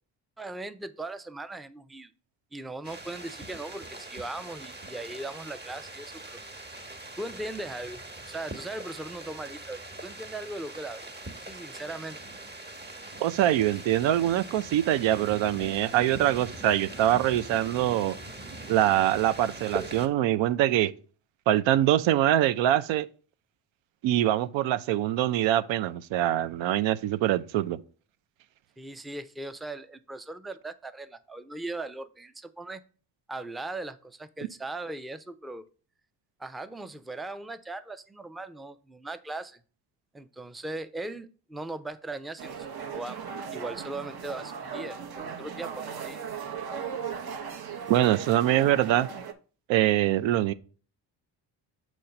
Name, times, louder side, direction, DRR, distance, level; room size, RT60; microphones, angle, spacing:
voice 1, 0.4-2.1 2.5-6.4 7.2-11.1 11.5-12.2 28.8-32.8 33.3-35.7 36.4-39.6 40.1-43.2 43.5-46.2, right 2 dB, ahead, 0.4 m, -39 dB
sound 1, 2.8-20.1, right 2 dB, 25° right, 1.2 m, -42 dB
voice 2, 13.2-18.2 18.7-20.9 21.5-23.1 24.0-27.8 47.9-49.1 49.7-50.5, right 13 dB, 90° right, 0.5 m, -24 dB
sound 2, 42.4-49.3, right 6 dB, 55° right, 0.9 m, -37 dB
6.5 x 3.1 x 5.7 m
cardioid pair, 75°, 44 cm